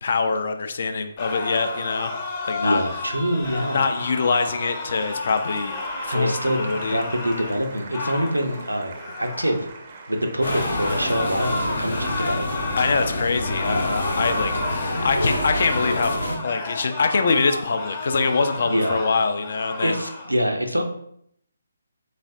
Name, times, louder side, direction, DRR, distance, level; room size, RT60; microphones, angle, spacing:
voice 1, 0.0-2.2 2.4-2.8 3.7-5.8 6.0-7.0 12.8-16.2 16.4-20.0, left 4 dB, 50° left, 8 dB, 0.3 m, -24 dB
sound 1, 1.2-9.6 10.3-20.3, left 2 dB, 25° left, 0.7 m, -32 dB
voice 2, 2.6-4.1 6.1-8.9 9.2-9.7 10.1-12.5 14.1-14.2 18.6-19.0 19.8-20.8, equal, 85° right, 4 dB, 0.6 m, -25 dB
Applause, 4.0-13.1, right 3 dB, 35° right, 0.5 m, -43 dB
sound 2, 10.4-16.4, left 1 dB, 75° left, 0.8 m, -28 dB
4.1 x 3.1 x 2.4 m, 0.69 s
figure-of-eight pair, 140°, 0 cm